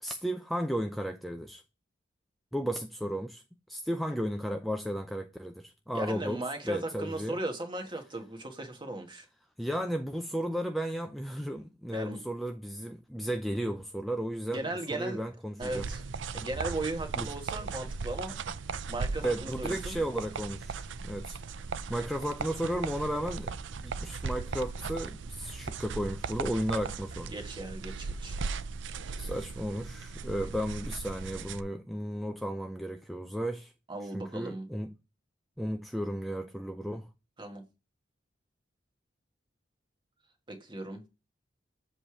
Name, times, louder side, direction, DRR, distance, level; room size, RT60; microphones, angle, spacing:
voice 1, 0.0-1.6 2.5-3.4 3.7-6.4 6.7-7.4 9.6-15.8 17.2-17.3 19.2-21.4 21.7-23.6 23.8-27.3 29.2-33.7 34.1-34.9 35.6-37.1, equal, ahead, 0.4 m, -34 dB
voice 2, 5.9-9.3 11.9-12.2 14.5-15.2 15.6-16.0 16.3-18.4 18.9-20.0 27.3-28.4 33.9-34.7 37.4-37.6 40.5-41.0, right 2 dB, 25° right, 1.5 m, -37 dB
sound 1, 15.6-31.6, right 4 dB, 70° right, 0.5 m, -38 dB
7.7 x 3.2 x 5.9 m
head